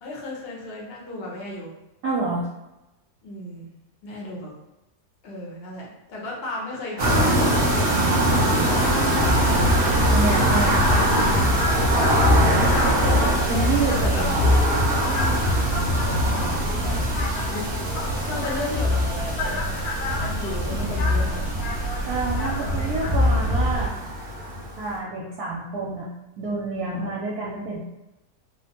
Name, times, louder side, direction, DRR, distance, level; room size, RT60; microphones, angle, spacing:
voice 1, 0.0-1.7 3.2-3.7 4.0-4.5 5.2-8.2 8.5-9.8 10.5-11.8 12.5-13.0 14.0-14.4 15.0-16.9 17.3-17.7 18.0-19.8 20.1-21.5 26.8-27.1, left 1 dB, 50° left, -3 dB, 0.8 m, -34 dB
voice 2, 2.0-2.5 10.1-10.7 13.5-14.2 20.1-20.2 22.1-24.0 24.8-26.1 26.4-27.8, right 3 dB, 75° right, -4 dB, 1.0 m, -28 dB
sound 1, 7.0-24.8, right 1 dB, 50° right, 0.7 m, -24 dB
sound 2, 9.2-23.9, left 1 dB, 75° left, 1.1 m, -24 dB
3.1 x 2.1 x 2.8 m, 0.97 s
omnidirectional pair, 1.7 m